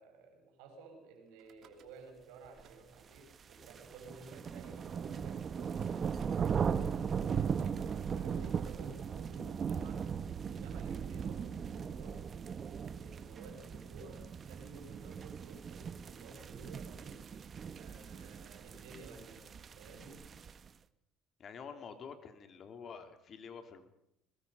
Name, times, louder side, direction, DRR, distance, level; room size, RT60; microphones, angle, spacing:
voice 1, 0.0-7.1 7.6-10.1 10.4-17.2 17.7-20.3, right 3 dB, 90° right, 4 dB, 5.8 m, -54 dB
Car / Engine starting / Idling, 1.4-2.2 2.4-3.2 3.9-4.0 4.2-4.3 4.6-4.8 5.8-12.0, right 8 dB, 60° right, 2.8 m, -51 dB
sound 1, 3.2-20.7, right 7 dB, 40° right, 1.0 m, -38 dB
voice 2, 21.4-23.9, left 6 dB, 45° left, 7 dB, 3.0 m, -48 dB
21.5 x 21.5 x 5.6 m, 0.82 s
supercardioid pair, 100°, 0 cm